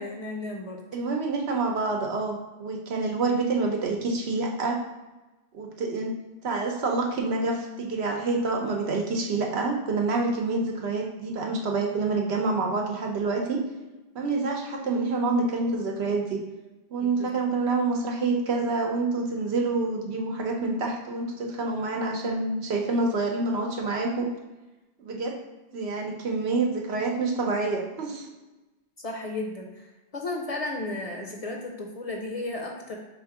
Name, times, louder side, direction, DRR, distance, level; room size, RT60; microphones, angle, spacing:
voice 1, 0.0-0.8 17.0-17.3 29.0-29.8 30.1-33.0, left 2 dB, 45° left, 1 dB, 0.6 m, -34 dB
voice 2, 0.9-4.8 5.5-6.2 6.4-13.6 14.1-16.4 16.9-24.3 25.0-25.3 25.7-28.3, right 3 dB, 85° right, 1 dB, 1.0 m, -27 dB
3.5 x 3.1 x 4.8 m, 1.1 s
omnidirectional pair, 1.0 m